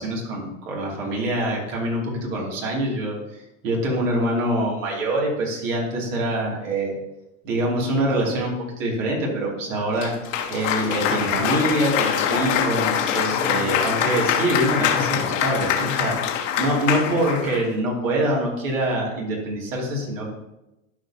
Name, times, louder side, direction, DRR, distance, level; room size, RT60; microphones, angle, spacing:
voice 1, 0.0-6.9 7.4-10.1 10.5-16.3 16.6-20.2, right 1 dB, 75° right, -2 dB, 2.8 m, -25 dB
Cheering / Applause, 10.0-17.7, left 8 dB, 70° left, 1.3 m, -24 dB
12.5 x 5.1 x 2.9 m, 0.94 s
hypercardioid pair, 105°, 39 cm